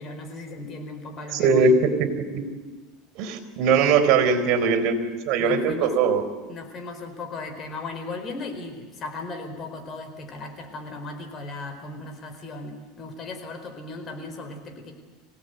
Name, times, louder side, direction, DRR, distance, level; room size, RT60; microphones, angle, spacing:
voice 1, 0.0-1.7 3.8-4.2 5.4-5.9 6.5-14.9, left 3 dB, 35° left, 6 dB, 4.6 m, -37 dB
voice 2, 1.3-2.5 3.2-5.0 5.3-6.2, right 5 dB, 60° right, 8 dB, 4.0 m, -21 dB
26.0 x 17.0 x 8.2 m, 1.4 s
supercardioid pair, 120°, 0 cm